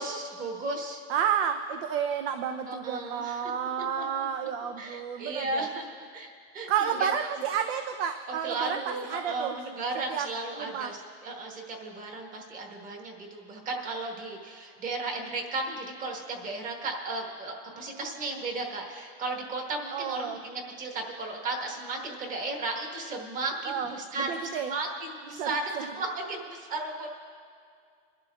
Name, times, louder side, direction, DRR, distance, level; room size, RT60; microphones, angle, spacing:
voice 1, 0.0-1.0 2.7-3.5 4.0-4.3 4.8-5.9 6.1-6.7 7.0-7.1 8.3-27.1, right 3 dB, 25° right, 1 dB, 1.3 m, -35 dB
voice 2, 1.1-5.7 6.7-9.6 10.1-10.3 10.6-10.9 19.9-20.4 23.7-23.9 24.2-24.7 25.4-25.8, right 8 dB, 75° right, 7 dB, 0.6 m, -31 dB
27.0 x 11.5 x 2.3 m, 2.3 s
supercardioid pair, 170°, 32 cm